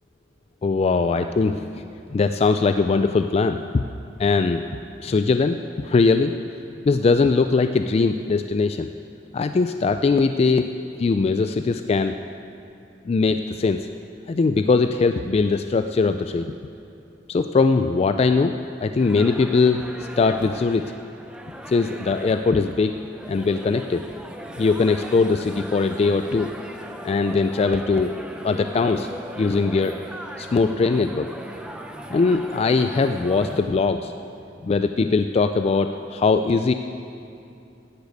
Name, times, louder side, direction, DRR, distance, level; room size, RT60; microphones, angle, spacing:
voice 1, 0.6-1.7 2.1-3.8 4.2-4.6 5.0-6.3 6.9-8.9 9.3-10.7 11.0-12.1 13.1-13.8 14.3-16.5 17.3-18.6 18.8-19.8 20.2-20.9 21.7-22.9 23.3-24.0 24.6-26.5 27.0-28.1 28.4-29.1 29.4-29.9 30.4-31.3 32.1-34.1 34.6-36.7, left 4 dB, 35° left, 8 dB, 0.3 m, -20 dB
sound 1, 19.0-33.6, equal, 5° right, 0.7 m, -38 dB
10.5 x 8.3 x 8.3 m, 2.6 s
head